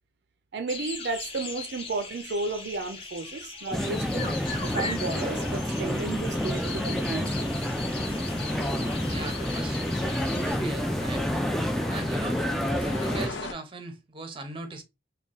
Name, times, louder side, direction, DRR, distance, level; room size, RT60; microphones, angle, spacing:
voice 1, 0.5-7.7 9.2-9.3, right 3 dB, 65° right, 0.4 m, -33 dB
sound 1, 0.7-10.6, left 4 dB, 30° left, 0.7 m, -39 dB
sound 2, 3.7-13.3, equal, ahead, 0.3 m, -29 dB
sound 3, 4.3-13.5, left 4 dB, 90° left, 0.7 m, -42 dB
voice 2, 9.1-9.8 10.4-11.4 11.9-12.4 12.8-14.8, right 3 dB, 30° right, 0.6 m, -39 dB
3.6 x 2.2 x 3.9 m
head